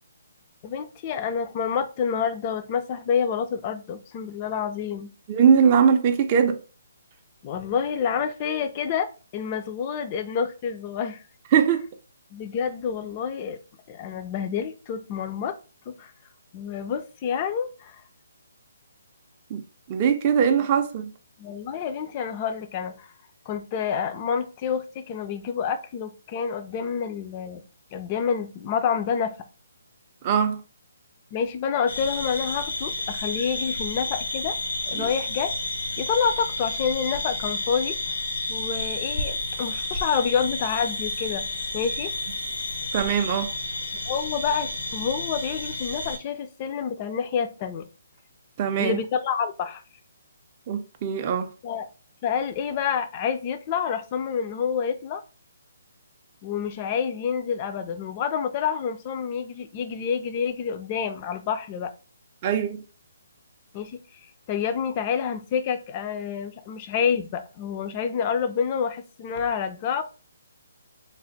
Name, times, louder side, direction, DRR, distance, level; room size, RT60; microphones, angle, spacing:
voice 1, 0.6-5.1 7.4-11.2 12.3-13.6 13.9-15.6 15.9-16.1 16.5-18.0 21.4-23.1 23.5-27.6 27.9-29.3 31.3-34.5 34.8-35.5 36.0-38.0 38.5-41.4 41.7-42.1 44.1-47.9 48.8-49.8 51.6-51.9 52.2-55.2 56.4-61.9 63.7-64.0 64.5-70.0, left 7 dB, 30° left, 0.4 m, -28 dB
voice 2, 5.3-6.6 11.5-11.8 19.5-19.6 19.9-21.1 30.2-30.6 35.0-35.1 42.9-43.5 48.6-49.0 50.7-51.5 62.4-62.8, right 7 dB, 30° right, 0.4 m, -21 dB
sound 1, 31.9-46.2, left 2 dB, 80° left, 1.0 m, -31 dB
3.3 x 2.1 x 3.9 m
hypercardioid pair, 155°, 0 cm